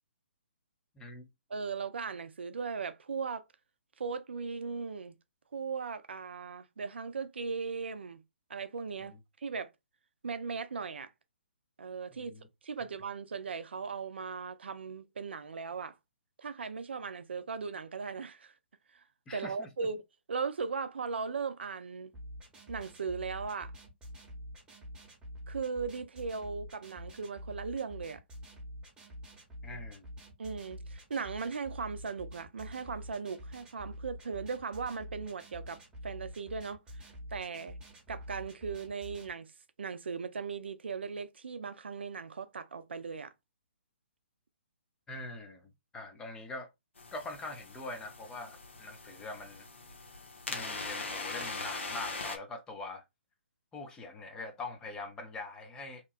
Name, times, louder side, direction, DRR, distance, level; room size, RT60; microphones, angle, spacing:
voice 1, 1.0-1.3 12.2-12.4 19.3-19.7 29.6-30.1 45.1-46.7 47.1-49.7 50.5-53.0 53.7-56.1, left 2 dB, 10° left, 0.5 m, -43 dB
voice 2, 1.5-3.4 4.0-5.1 5.5-8.2 8.5-9.7 10.2-11.1 11.8-12.3 12.6-15.9 16.4-18.5 18.9-19.0 19.3-20.0 20.3-22.1 22.7-23.7 25.5-28.2 30.4-37.8 38.1-39.5 39.8-43.3, right 5 dB, 65° right, 0.4 m, -38 dB
sound 1, 22.1-39.3, equal, 10° right, 0.9 m, -47 dB
sound 2, 47.0-52.4, left 3 dB, 85° left, 0.8 m, -41 dB
2.9 x 2.2 x 2.3 m
figure-of-eight pair, 130°, 6 cm